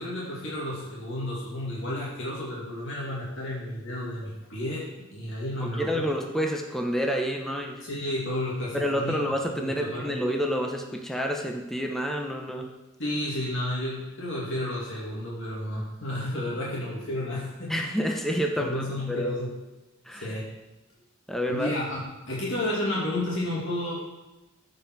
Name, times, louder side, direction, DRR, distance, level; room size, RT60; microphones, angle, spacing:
voice 1, 0.0-4.8 5.1-6.0 7.8-9.2 9.5-10.2 13.0-17.9 18.6-19.5 20.1-20.4 21.5-22.0 22.3-23.9, left 1 dB, 60° left, -6 dB, 2.5 m, -31 dB
voice 2, 5.6-7.8 8.7-12.7 17.7-19.3 20.1-20.3 21.3-21.7, equal, ahead, 2 dB, 0.9 m, -29 dB
14.0 x 5.4 x 6.0 m, 1.1 s
head